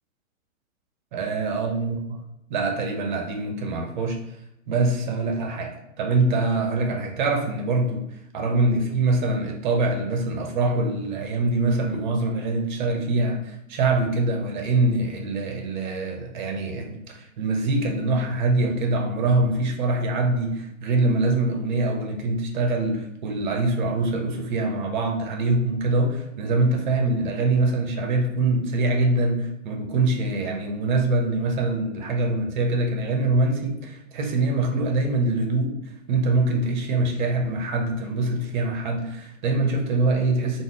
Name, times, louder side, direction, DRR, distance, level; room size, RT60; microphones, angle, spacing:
voice 1, 1.1-2.2 2.5-4.2 4.7-8.0 8.3-40.6, right 2 dB, 35° right, 2 dB, 0.6 m, -24 dB
3.6 x 2.0 x 3.5 m, 0.85 s
figure-of-eight pair, 125°, 42 cm